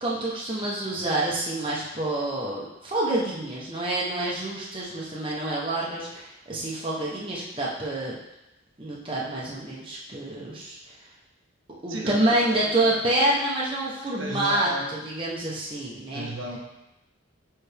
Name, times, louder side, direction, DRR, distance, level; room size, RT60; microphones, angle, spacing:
voice 1, 0.0-8.1 8.8-10.8 11.8-16.3, right 1 dB, 25° right, -5 dB, 1.0 m, -27 dB
voice 2, 11.9-12.9 14.2-14.9 16.1-16.6, right 1 dB, 70° right, -1 dB, 1.1 m, -34 dB
9.1 x 3.5 x 3.5 m, 0.91 s
head